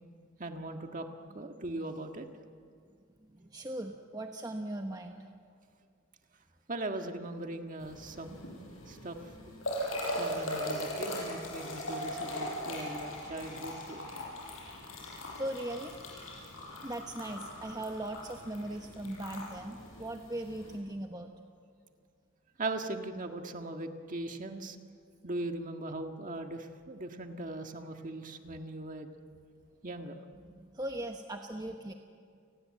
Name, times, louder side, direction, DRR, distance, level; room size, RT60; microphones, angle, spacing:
voice 1, 0.4-1.1 1.3-2.3 6.7-8.4 8.9-9.2 10.2-14.0 22.6-24.8 25.2-29.1 29.8-30.2, right 2 dB, 40° right, 5 dB, 1.7 m, -39 dB
voice 2, 3.3-5.2 15.3-15.9 16.8-21.3 30.5-31.9, right 1 dB, 20° right, 4 dB, 1.0 m, -39 dB
sound 1, 7.8-20.8, left 1 dB, 80° left, 7.4 m, -40 dB
29.5 x 20.0 x 7.6 m, 2.2 s
head